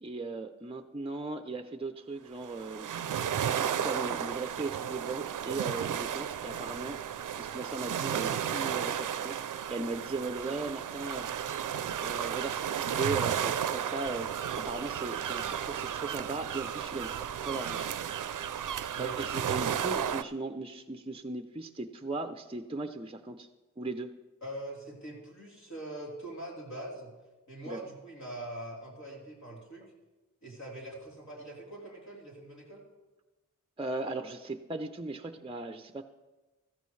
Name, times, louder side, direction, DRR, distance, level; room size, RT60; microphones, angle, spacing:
voice 1, 0.0-2.9 3.5-7.0 7.4-11.3 12.0-14.3 14.6-17.9 19.0-23.5 23.8-24.1 27.7-27.8 33.8-36.0, right 3 dB, 20° right, 8 dB, 0.5 m, -37 dB
sound 1, 2.4-20.2, right 9 dB, 75° right, 0.5 m, -33 dB
voice 2, 24.4-27.1 27.5-29.8 30.4-32.9, right 1 dB, 60° left, -3 dB, 3.6 m, -43 dB
15.0 x 14.0 x 3.2 m, 1.1 s
wide cardioid pair, 130°, 32 cm